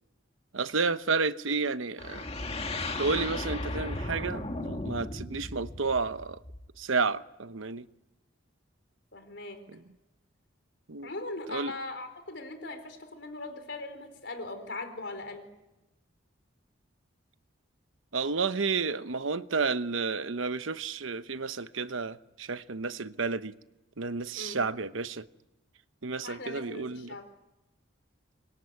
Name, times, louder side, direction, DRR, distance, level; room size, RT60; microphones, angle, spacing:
voice 1, 0.5-2.3 3.0-6.4 6.8-7.8 10.9-11.1 11.5-11.7 18.1-23.5 24.0-25.3 26.0-27.2, right 4 dB, 85° right, 1.0 m, -31 dB
sound 1, 2.0-6.8, left 2 dB, 30° left, 1.9 m, -36 dB
voice 2, 9.1-9.6 11.0-15.5 24.4-24.6 26.2-27.3, left 2 dB, 60° left, 4.2 m, -40 dB
25.5 x 23.0 x 9.6 m
head